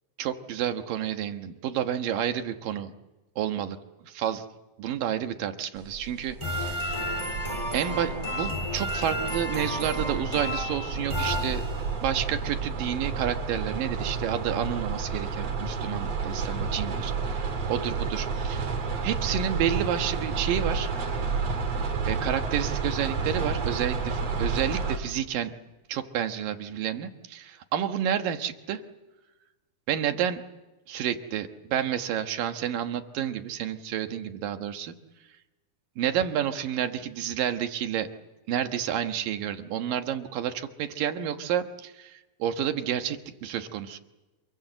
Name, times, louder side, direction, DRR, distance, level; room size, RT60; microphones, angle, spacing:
voice 1, 0.2-2.9 3.4-3.8 4.0-4.5 4.8-7.2 7.7-11.7 12.0-20.9 22.0-25.5 25.9-28.8 29.9-30.4 30.9-34.9 36.0-38.1 38.5-44.0, right 9 dB, 75° right, 7 dB, 3.0 m, -30 dB
sound 1, 5.8-25.0, right 5 dB, 50° right, 3.4 m, -31 dB
sound 2, 6.4-12.1, left 1 dB, 10° left, 3.8 m, -32 dB
27.5 x 22.5 x 7.9 m, 1.1 s
omnidirectional pair, 4.0 m